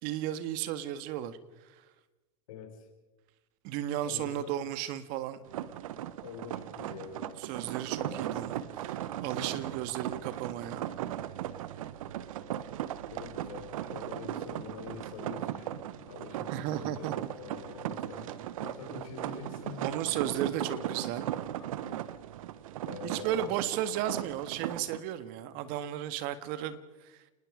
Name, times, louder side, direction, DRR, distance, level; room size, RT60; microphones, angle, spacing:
voice 1, 0.0-1.4 3.6-5.4 7.4-10.9 16.5-17.1 19.8-21.3 23.0-27.1, right 11 dB, 55° right, 13 dB, 1.8 m, -34 dB
voice 2, 2.5-2.9 4.0-4.6 6.2-7.4 8.0-8.3 8.8-9.7 13.1-18.3 18.6-20.0 20.3-20.9 21.6-22.0 22.8-23.7, left 7 dB, 70° left, 4 dB, 5.1 m, -46 dB
sound 1, 5.4-25.0, right 12 dB, 70° right, 1.1 m, -37 dB
29.5 x 20.0 x 5.1 m, 1.1 s
hypercardioid pair, 90°, 18 cm